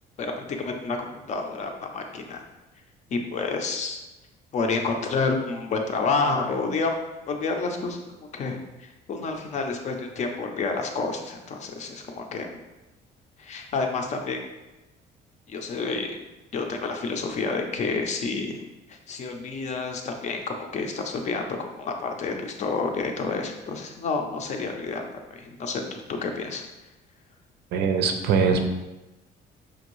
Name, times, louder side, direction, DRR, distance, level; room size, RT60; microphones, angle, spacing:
voice 1, 0.2-2.4 3.1-4.0 4.5-7.0 7.3-12.5 13.4-14.4 15.5-16.2 16.5-26.6, left 4 dB, 40° left, 3 dB, 0.5 m, -29 dB
voice 2, 27.7-28.6, right 5 dB, 70° right, 6 dB, 0.5 m, -22 dB
5.5 x 2.6 x 3.1 m, 1.0 s
cardioid pair, 165°, 18 cm